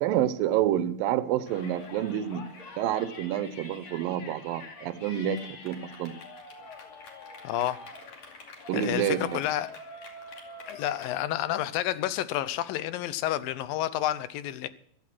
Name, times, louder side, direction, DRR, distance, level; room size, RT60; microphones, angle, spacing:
voice 1, 0.0-2.5 2.8-6.2 8.7-9.4, right 11 dB, 80° right, 2.6 m, -28 dB
Yell, 1.5-11.1, left 3 dB, 50° left, 3.5 m, -45 dB
voice 2, 7.4-7.8 8.7-9.7 10.7-14.7, left 13 dB, 80° left, 2.5 m, -30 dB
15.5 x 12.5 x 6.2 m
omnidirectional pair, 4.2 m